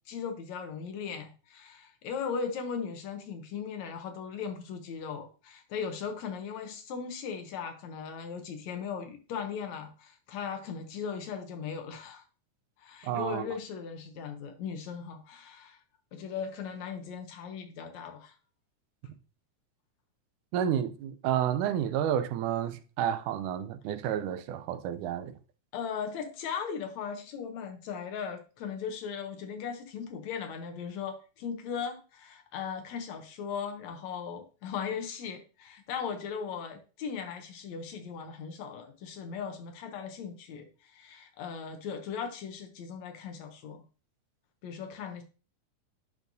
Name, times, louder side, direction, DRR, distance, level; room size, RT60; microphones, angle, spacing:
voice 1, 0.1-12.2 12.8-15.8 16.1-18.3 25.7-43.8 44.6-45.2, left 6 dB, 70° left, 2.0 m, -38 dB
voice 2, 13.0-13.5 20.5-25.3, right 10 dB, 85° right, 2.1 m, -30 dB
10.5 x 4.4 x 2.7 m
omnidirectional pair, 3.5 m